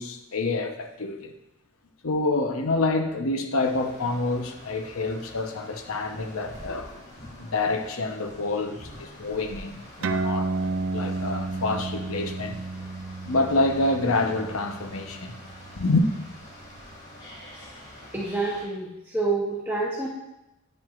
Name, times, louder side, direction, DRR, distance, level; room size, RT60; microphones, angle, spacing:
voice 1, 0.0-1.3 2.0-7.0 7.4-12.6 13.2-15.3 15.7-16.1, left 2 dB, 80° left, 0.9 m, -27 dB
sound 1, 3.6-18.6, left 1 dB, 55° left, 2.5 m, -46 dB
sound 2, 10.0-17.0, right 3 dB, 65° right, 0.4 m, -32 dB
voice 2, 18.1-20.1, right 3 dB, 10° right, 0.9 m, -28 dB
9.3 x 7.6 x 2.5 m
head